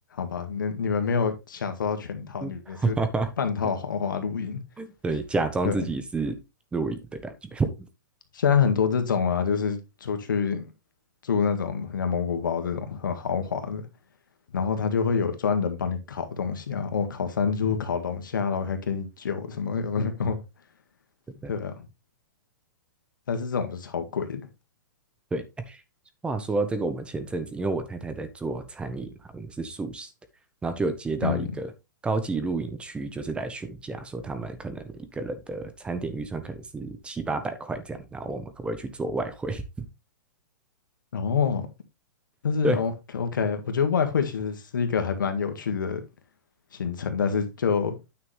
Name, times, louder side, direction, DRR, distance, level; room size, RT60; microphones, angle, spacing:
voice 1, 0.1-3.0 3.4-4.6 5.6-5.8 8.3-10.7 11.2-13.9 14.5-20.4 21.5-21.7 23.3-24.4 31.2-31.5 41.1-41.7 42.4-46.0 46.7-47.9, left 6 dB, 85° left, 1.8 m, -27 dB
voice 2, 2.4-3.3 4.8-6.4 6.7-7.7 21.3-21.5 25.3-25.8 26.2-30.1 30.6-31.7 32.0-39.6 42.6-42.8, right 3 dB, 10° right, 1.1 m, -30 dB
9.5 x 5.9 x 3.3 m
hypercardioid pair, 135°, 11 cm